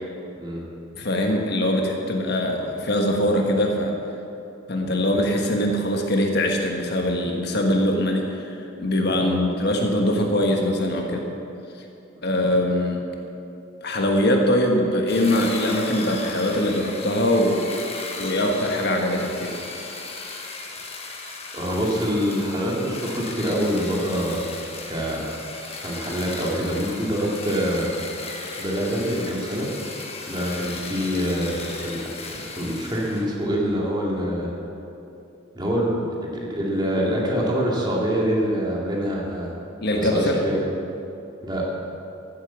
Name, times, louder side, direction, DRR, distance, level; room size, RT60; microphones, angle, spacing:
voice 1, 0.9-4.0 4.7-11.3 12.2-13.0 13.8-17.6 18.2-19.6 39.8-40.4, left 1 dB, 55° left, 2 dB, 1.3 m, -22 dB
sound 1, 15.1-33.3, left 3 dB, 30° left, 1.4 m, -36 dB
voice 2, 21.5-24.4 24.9-25.2 25.8-27.9 28.6-29.7 30.3-34.5 35.5-36.0 36.5-39.5 40.0-40.7 41.4-41.6, equal, 20° right, -3 dB, 2.5 m, -25 dB
14.0 x 8.5 x 7.1 m, 2.8 s
head